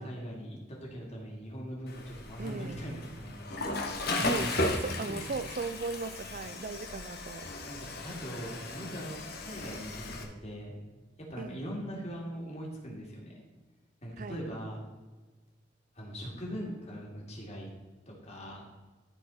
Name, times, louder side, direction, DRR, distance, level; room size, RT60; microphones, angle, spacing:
voice 1, 0.0-3.5 4.0-5.2 7.7-10.8 11.2-13.4 14.0-14.8 15.9-17.7 18.1-18.6, equal, 40° left, 2.6 m, -41 dB
Water / Toilet flush, 1.9-10.2, left 2 dB, 60° left, 1.4 m, -36 dB
voice 2, 2.4-2.8 4.1-7.5 11.4-11.7 14.2-14.4, right 4 dB, 50° right, 0.5 m, -37 dB
14.0 x 4.7 x 4.3 m
head